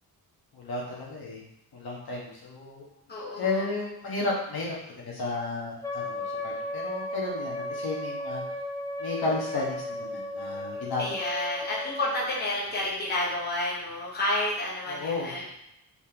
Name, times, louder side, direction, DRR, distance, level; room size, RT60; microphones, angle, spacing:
voice 1, 0.5-1.4 1.7-2.9 3.4-8.4 9.0-11.2 14.9-15.5, left 3 dB, 70° left, -4 dB, 1.5 m, -33 dB
voice 2, 3.1-3.7 11.0-15.5, left 1 dB, 25° left, -6 dB, 1.0 m, -30 dB
Wind instrument woodwind instrument, 5.8-12.4, left 1 dB, 10° left, 0.5 m, -35 dB
4.5 x 3.8 x 2.9 m, 0.83 s
wide cardioid pair, 160°, 38 cm